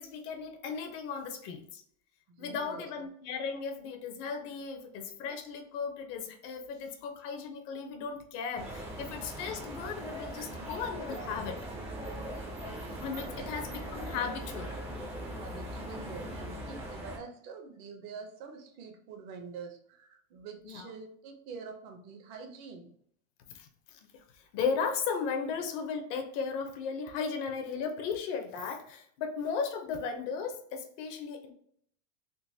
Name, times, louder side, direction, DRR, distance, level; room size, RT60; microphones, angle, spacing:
voice 1, 0.0-1.8 2.4-11.6 13.0-14.7 20.6-20.9 23.5-31.5, left 6 dB, 55° left, 4 dB, 0.7 m, -36 dB
voice 2, 2.3-2.9 10.4-10.5 13.2-13.8 15.4-22.9, right 5 dB, 50° right, 4 dB, 0.7 m, -46 dB
sound 1, 8.6-17.2, right 1 dB, 15° right, 0.4 m, -40 dB
3.8 x 2.5 x 2.6 m, 0.65 s
supercardioid pair, 155°, 43 cm